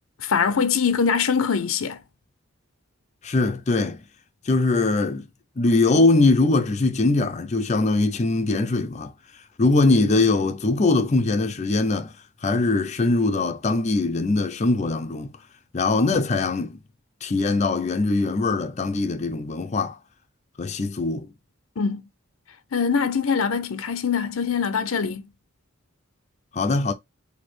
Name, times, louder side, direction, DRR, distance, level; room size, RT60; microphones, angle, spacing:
voice 1, 0.2-2.0 21.8-22.0 22.7-25.3, left 6 dB, 85° left, 0.6 m, -23 dB
voice 2, 3.2-4.0 4.5-5.3 5.6-9.1 9.6-12.1 12.4-15.3 15.7-16.8 17.2-20.0 20.6-21.3 26.5-26.9, left 3 dB, 35° left, 0.5 m, -21 dB
4.2 x 2.7 x 3.1 m
head